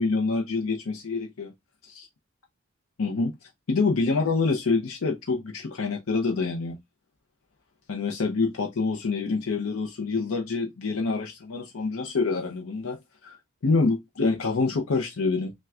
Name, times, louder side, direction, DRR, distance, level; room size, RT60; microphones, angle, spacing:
voice 1, 0.0-1.5 1.8-2.1 3.0-3.3 3.7-6.7 7.9-13.4 13.6-15.5, left 4 dB, 80° left, 0.6 m, -26 dB
5.7 x 2.3 x 2.3 m
head